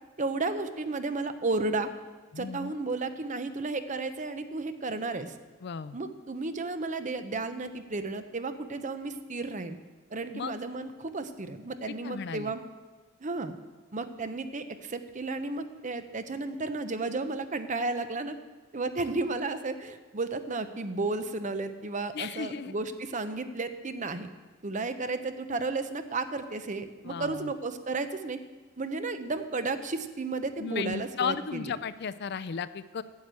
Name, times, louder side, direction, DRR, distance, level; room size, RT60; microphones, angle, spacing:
voice 1, 0.2-1.9 2.4-5.4 5.9-9.8 10.1-12.6 13.2-13.5 13.9-18.4 18.7-24.3 24.6-28.4 28.8-31.7, right 3 dB, 35° right, 9 dB, 0.7 m, -33 dB
voice 2, 2.3-2.7 5.6-6.0 10.3-10.5 12.0-12.5 22.1-22.7 27.0-27.5 30.6-33.0, left 6 dB, 55° left, 15 dB, 0.4 m, -34 dB
9.5 x 8.5 x 7.7 m, 1.3 s
head